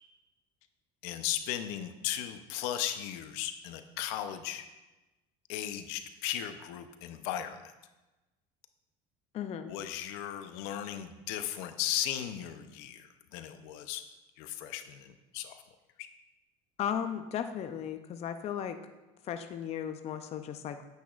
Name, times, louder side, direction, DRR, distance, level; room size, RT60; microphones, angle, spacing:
voice 1, 1.0-4.7 5.5-7.7 9.7-14.0 14.4-15.6 16.0-16.1, left 11 dB, 80° left, 9 dB, 0.7 m, -36 dB
voice 2, 9.3-9.7 16.8-18.8 19.2-20.9, left 9 dB, 40° left, 9 dB, 0.5 m, -35 dB
9.2 x 8.3 x 2.4 m, 1.1 s
cardioid pair, 120°, 17 cm